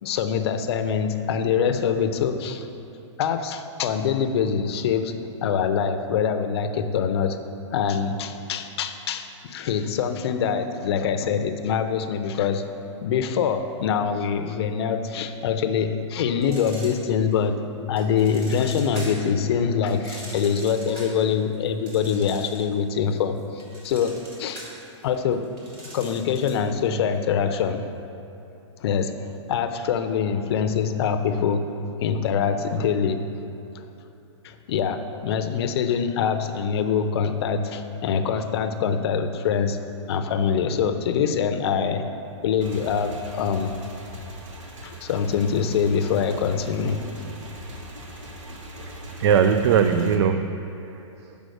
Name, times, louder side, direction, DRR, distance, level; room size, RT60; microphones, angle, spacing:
voice 1, 0.0-2.7 3.2-7.4 7.7-12.6 13.0-17.6 17.9-24.6 25.0-25.4 25.9-27.9 28.8-29.1 29.5-31.6 32.0-33.2 34.4-39.8 40.1-42.0 42.4-43.7 44.8-47.1, left 7 dB, 55° left, 8 dB, 0.6 m, -24 dB
sound 1, 16.4-17.5 18.0-19.3 19.9-22.8 23.1-26.7, right 1 dB, 35° right, 1.7 m, -42 dB
Motorcycle / Engine, 42.6-50.2, equal, 80° right, 1.1 m, -40 dB
voice 2, 48.8-51.4, right 7 dB, 60° right, 7 dB, 0.4 m, -22 dB
6.4 x 5.1 x 6.3 m, 2.8 s
hypercardioid pair, 150°, 16 cm